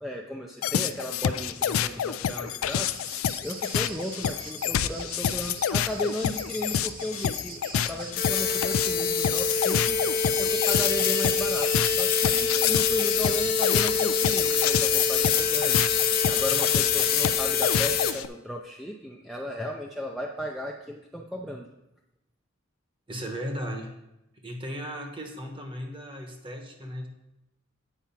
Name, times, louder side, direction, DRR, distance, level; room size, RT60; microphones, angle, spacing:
voice 1, 0.0-15.9 16.3-21.7, equal, ahead, 0 dB, 0.4 m, -35 dB
sound 1, 0.6-18.3, left 9 dB, 85° left, 0.3 m, -28 dB
sound 2, 2.3-17.3, right 4 dB, 45° right, 1.0 m, -43 dB
sound 3, 8.2-18.1, left 6 dB, 45° left, 0.6 m, -25 dB
voice 2, 23.1-23.9 24.4-27.1, equal, 25° right, 3 dB, 1.1 m, -36 dB
8.9 x 4.6 x 5.7 m, 0.90 s
head